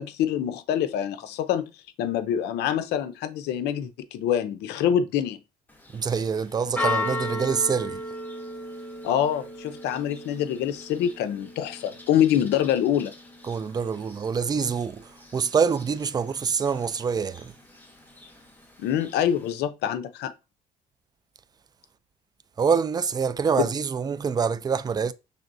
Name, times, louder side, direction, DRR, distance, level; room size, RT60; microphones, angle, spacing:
voice 1, 0.0-1.7 2.0-5.4 9.0-13.1 18.8-20.3 23.6-23.7, left 10 dB, 80° left, 0.6 m, -25 dB
Church bell, 5.7-19.5, left 2 dB, 10° left, 1.0 m, -37 dB
voice 2, 5.9-8.0 13.4-17.5 22.6-25.1, right 6 dB, 25° right, 0.4 m, -25 dB
5.8 x 3.4 x 2.6 m
cardioid pair, 110°, 17 cm